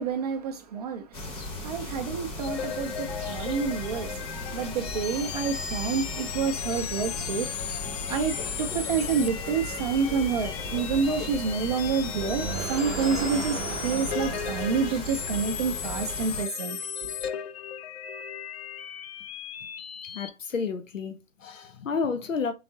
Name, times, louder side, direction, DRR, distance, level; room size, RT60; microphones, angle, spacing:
voice 1, 0.0-17.1, right 5 dB, 35° right, 0.4 m, -29 dB
sound 1, 1.1-16.4, left 2 dB, 15° left, 0.8 m, -37 dB
sound 2, 2.4-20.3, left 8 dB, 55° left, 0.6 m, -36 dB
sound 3, 12.1-16.2, right 8 dB, 75° right, 0.6 m, -37 dB
voice 2, 20.1-22.5, left 5 dB, 85° left, 0.8 m, -31 dB
3.9 x 3.4 x 2.7 m
figure-of-eight pair, 125°, 38 cm